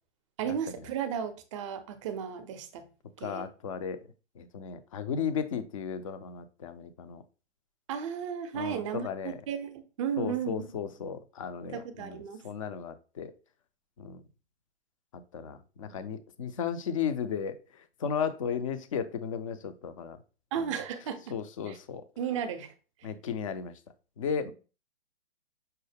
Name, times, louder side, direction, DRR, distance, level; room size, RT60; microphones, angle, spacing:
voice 1, 0.4-2.9 3.2-3.5 7.9-10.6 11.6-12.4 20.5-21.3 21.7-21.8 22.2-22.7 24.4-24.5, right 8 dB, 30° right, 0.5 m, -34 dB
voice 2, 3.2-4.1 4.4-7.2 8.5-9.4 10.2-13.3 14.0-14.2 15.3-20.2 20.6-20.8 21.3-22.0 23.0-23.7 24.2-24.5, left 7 dB, 30° left, 0.4 m, -35 dB
5.5 x 2.0 x 3.3 m
hypercardioid pair, 135°, 35 cm